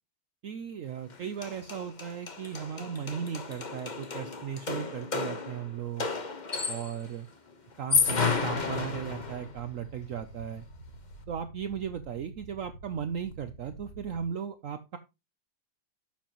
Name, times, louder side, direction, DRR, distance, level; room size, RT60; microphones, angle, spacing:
voice 1, 0.4-6.1 6.7-7.3 7.8-10.6 11.3-15.0, right 8 dB, 80° right, 10 dB, 0.7 m, -36 dB
sound 1, 1.1-1.2 1.4-7.1 7.7-9.5, left 4 dB, 30° left, 0.9 m, -32 dB
sound 2, 8.3-14.3, right 2 dB, 55° left, 3.9 m, -48 dB
11.5 x 7.3 x 3.0 m, 0.25 s
omnidirectional pair, 2.2 m